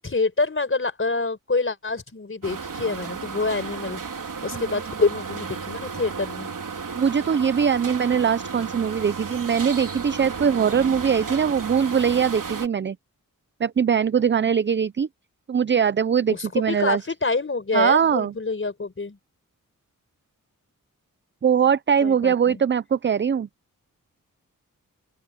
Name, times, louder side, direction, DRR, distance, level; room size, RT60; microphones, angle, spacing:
voice 1, 0.0-4.0 4.4-6.5 16.3-19.2 22.0-22.6, left 3 dB, 35° left, 4.5 m, -26 dB
sound 1, 2.4-12.7, right 5 dB, 65° right, 3.9 m, -33 dB
voice 2, 6.9-13.0 13.6-15.1 15.5-17.0 17.7-18.3 21.4-23.5, right 7 dB, 35° right, 0.5 m, -21 dB
open air
wide cardioid pair, 85°, 34 cm